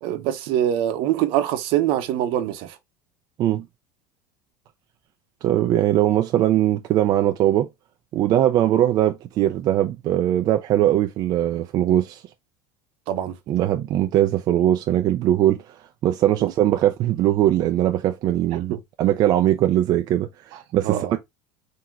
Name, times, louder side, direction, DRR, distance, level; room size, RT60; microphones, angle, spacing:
voice 1, 0.0-2.7 13.1-13.3 16.4-16.5 18.7-18.8 20.8-21.2, right 11 dB, 60° right, 0.8 m, -24 dB
voice 2, 5.4-7.7 8.1-12.2 13.5-15.6 16.0-20.3 20.7-21.2, right 12 dB, 40° right, 0.4 m, -20 dB
3.8 x 2.8 x 4.5 m
cardioid pair, 155°, 10 cm